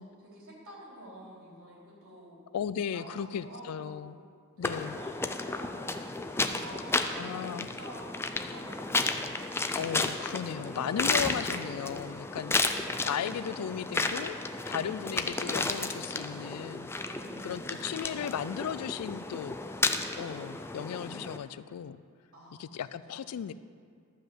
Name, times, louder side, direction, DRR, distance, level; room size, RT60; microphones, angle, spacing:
voice 1, 0.2-2.4 2.9-4.1 4.5-6.0 6.4-9.3 12.5-13.3 14.0-14.3 17.1-18.4 22.3-23.2, right 1 dB, 65° right, -5 dB, 3.3 m, -49 dB
voice 2, 2.5-4.2 4.6-5.0 7.2-7.7 9.7-14.3 14.7-16.9 17.4-19.6 20.2-22.0 22.6-23.5, left 8 dB, 85° left, 15 dB, 0.4 m, -36 dB
sound 1, 4.6-21.4, left 3 dB, 10° left, 0.4 m, -33 dB
12.0 x 5.3 x 7.6 m, 2.2 s
head